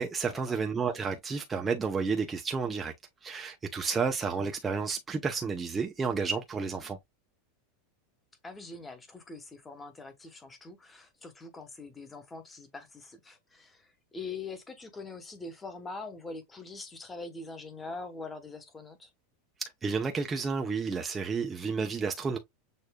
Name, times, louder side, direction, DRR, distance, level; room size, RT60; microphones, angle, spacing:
voice 1, 0.0-2.9 3.2-7.0 19.6-22.4, right 5 dB, 15° right, 0.5 m, -31 dB
voice 2, 8.4-19.1, left 3 dB, 15° left, 1.0 m, -43 dB
6.5 x 2.6 x 2.2 m
supercardioid pair, 140°, 0 cm